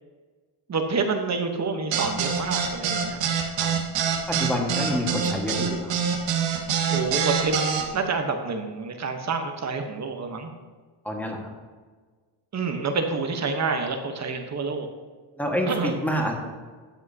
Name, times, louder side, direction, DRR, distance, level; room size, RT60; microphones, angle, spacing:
voice 1, 0.7-3.2 6.9-10.5 12.5-14.9 15.7-15.9, right 4 dB, 35° right, 5 dB, 1.2 m, -28 dB
sound 1, 1.9-7.8, right 7 dB, 90° right, 1.6 m, -25 dB
voice 2, 4.3-5.9 11.0-11.4 15.4-16.3, equal, 5° left, 0 dB, 1.7 m, -27 dB
12.5 x 7.5 x 2.9 m, 1.4 s
cardioid pair, 120°, 44 cm